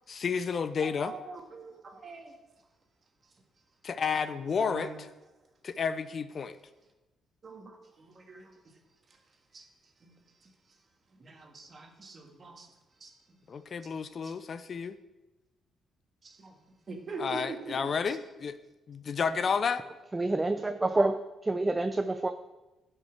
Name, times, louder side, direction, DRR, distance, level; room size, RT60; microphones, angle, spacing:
voice 1, 0.1-1.1 3.8-4.9 5.6-6.6 13.5-15.0 17.2-18.6 18.9-19.8, left 6 dB, 50° left, 12 dB, 0.5 m, -31 dB
voice 2, 0.8-2.4 4.6-5.0 7.4-8.5 9.5-9.6 10.0-10.1 10.4-10.5 11.2-12.7 13.0-13.1 14.2-14.3 16.2-16.5 16.9-18.2, right 3 dB, 40° right, 3 dB, 1.7 m, -43 dB
voice 3, 20.1-22.3, right 2 dB, 20° right, 9 dB, 0.4 m, -28 dB
11.5 x 5.6 x 4.9 m, 1.1 s
cardioid pair, 90°, 0 cm